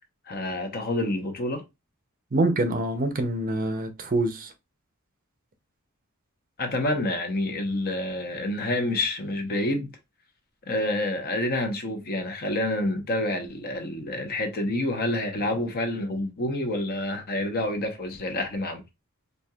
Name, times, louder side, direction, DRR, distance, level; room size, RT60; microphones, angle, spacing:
voice 1, 0.3-1.6 6.6-9.9 10.7-18.8, left 1 dB, 45° left, 0.8 m, -28 dB
voice 2, 2.3-4.5, right 2 dB, 40° right, 0.6 m, -25 dB
4.3 x 2.8 x 2.3 m
head